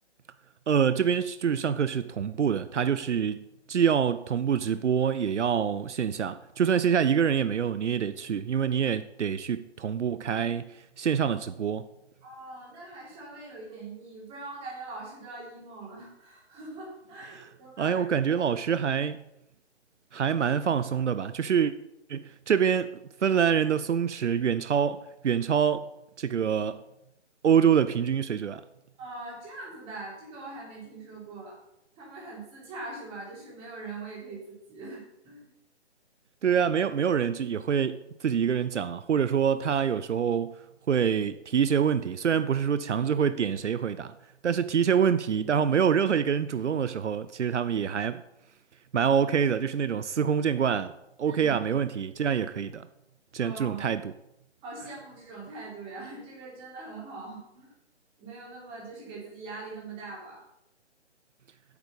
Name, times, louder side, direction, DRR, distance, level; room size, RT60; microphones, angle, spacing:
voice 1, 0.7-10.7 11.0-11.9 17.8-19.2 20.1-21.7 22.1-22.9 23.2-25.0 25.2-25.8 26.2-26.8 27.4-28.6 36.4-40.5 40.9-44.1 44.4-48.2 48.9-50.9 51.2-52.9 53.3-54.1, right 7 dB, 80° right, 13 dB, 0.6 m, -26 dB
voice 2, 12.2-18.0 18.3-18.4 29.0-31.6 32.0-35.5 51.2-51.6 53.4-53.9 54.6-57.7 58.2-60.4, right 3 dB, 15° right, -5 dB, 3.6 m, -42 dB
8.7 x 8.2 x 5.2 m, 0.83 s
figure-of-eight pair, 150°, 35 cm